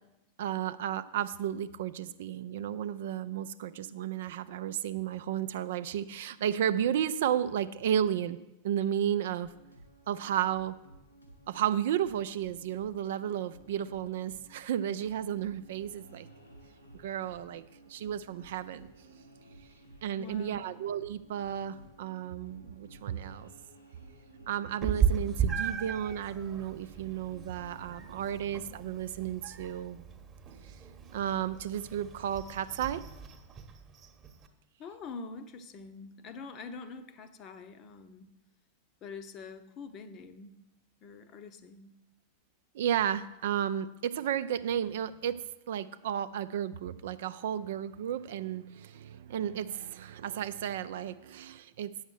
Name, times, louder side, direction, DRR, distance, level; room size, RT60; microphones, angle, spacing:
voice 1, 0.4-8.4 8.6-9.5 10.1-10.7 11.5-16.3 17.0-18.9 20.0-23.5 24.5-30.1 31.1-33.0 42.7-51.9, right 10 dB, 55° right, 0.4 m, -33 dB
sound 1, 9.4-28.4, right 2 dB, 85° left, 2.2 m, -55 dB
voice 2, 20.2-20.7 34.8-38.3 39.0-40.6 41.0-41.9, left 4 dB, 35° left, 0.8 m, -45 dB
Meow, 24.8-34.5, right 7 dB, 25° right, 1.1 m, -36 dB
8.9 x 6.4 x 6.3 m
figure-of-eight pair, 90°, 0 cm